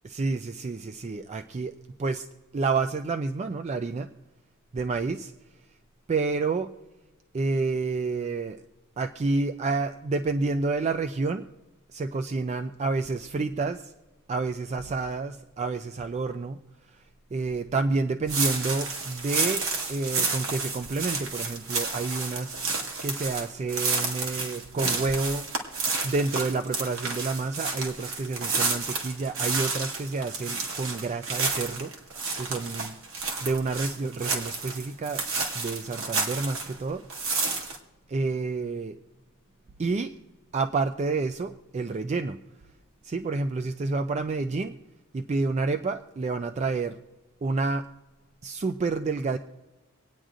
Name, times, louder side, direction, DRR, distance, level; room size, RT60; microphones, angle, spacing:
voice 1, 0.0-1.7 2.0-2.3 2.5-4.1 4.7-5.3 6.1-6.7 7.3-8.6 9.0-11.5 11.9-13.9 14.3-16.6 17.3-19.6 19.9-25.4 26.0-31.9 32.4-33.0 33.4-35.2 35.5-37.0 38.1-39.0 39.8-40.1 40.5-42.4 43.0-44.8 45.1-47.0 47.4-47.9 48.4-49.4, right 3 dB, 30° right, 8 dB, 0.3 m, -29 dB
sound 1, 18.3-36.8 37.1-37.8, right 4 dB, 65° right, 1.5 m, -30 dB
25.5 x 9.0 x 2.5 m, 1.2 s
head